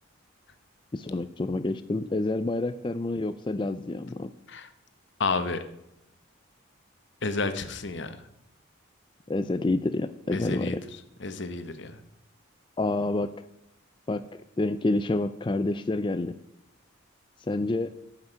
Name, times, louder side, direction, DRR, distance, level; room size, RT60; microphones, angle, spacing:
voice 1, 0.9-4.3 9.3-10.8 12.8-13.3 14.1-16.4 17.5-17.9, left 2 dB, 20° left, 11 dB, 0.3 m, -28 dB
voice 2, 5.2-5.6 7.2-8.3 10.3-10.8 11.2-12.0, left 3 dB, 55° left, 10 dB, 1.1 m, -31 dB
12.5 x 5.9 x 8.9 m, 0.86 s
head